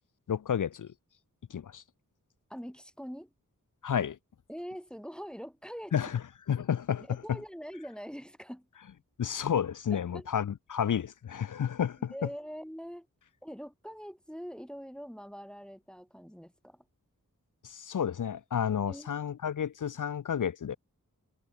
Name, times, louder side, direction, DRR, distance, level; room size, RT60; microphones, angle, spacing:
voice 1, 0.3-0.9 1.5-1.8 3.8-4.2 5.9-6.2 6.5-7.4 9.2-12.1 17.6-20.8, left 8 dB, 65° left, 0.5 m, -31 dB
voice 2, 2.5-3.3 4.5-6.1 7.1-8.7 9.9-10.3 12.1-13.1 13.4-16.8 18.8-19.1, equal, 5° left, 0.6 m, -43 dB
wide cardioid pair, 70°, 33 cm